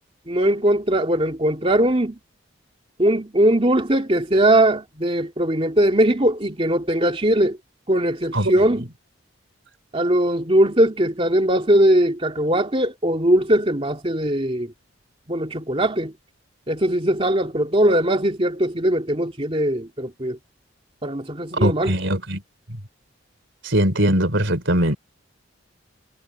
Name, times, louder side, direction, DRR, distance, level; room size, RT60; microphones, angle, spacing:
voice 1, 0.3-2.2 3.0-7.6 7.9-8.9 9.9-14.7 15.3-16.1 16.7-20.4 21.0-22.0, right 1 dB, 25° right, 2.5 m, -20 dB
voice 2, 21.6-22.4 23.6-25.0, right 1 dB, 65° right, 3.5 m, -20 dB
head